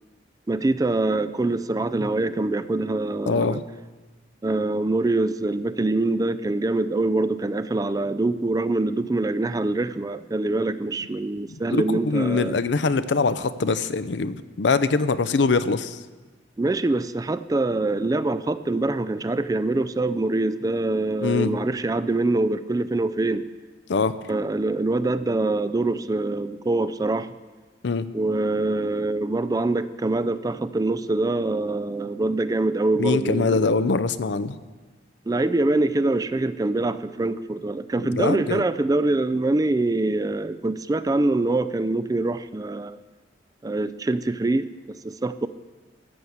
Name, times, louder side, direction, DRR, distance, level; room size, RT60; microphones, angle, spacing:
voice 1, 0.5-3.6 4.4-12.5 16.6-23.5 24.3-27.3 28.1-33.9 35.3-43.0 43.6-45.5, right 2 dB, 20° right, 13 dB, 0.3 m, -24 dB
voice 2, 3.3-3.6 11.7-16.0 21.2-21.5 23.9-24.2 27.8-28.1 33.0-34.6 38.0-38.6, left 4 dB, 70° left, 13 dB, 0.6 m, -23 dB
14.0 x 7.1 x 7.9 m, 1.3 s
head